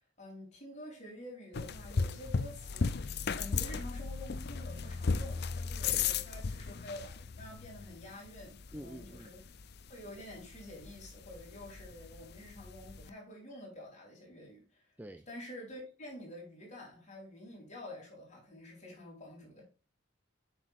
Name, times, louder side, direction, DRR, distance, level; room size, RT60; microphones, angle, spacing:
voice 1, 0.2-9.4 9.9-14.9 15.3-19.6, left 1 dB, 35° left, 3.5 m, -48 dB
sound 1, 1.5-13.1, left 5 dB, 55° left, 0.5 m, -37 dB
voice 2, 8.7-9.3 15.0-15.3, equal, 10° right, 0.4 m, -46 dB
7.5 x 6.1 x 2.5 m
head